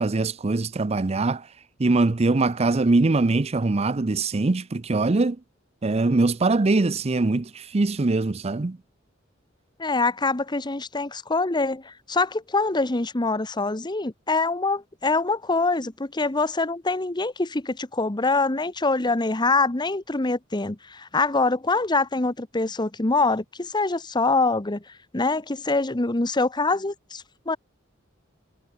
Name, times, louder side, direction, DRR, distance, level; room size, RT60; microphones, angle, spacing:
voice 1, 0.0-1.5 1.8-5.4 5.8-8.8, right 3 dB, 35° right, 0.6 m, -22 dB
voice 2, 9.8-24.8 25.1-27.6, left 3 dB, 25° left, 1.0 m, -24 dB
head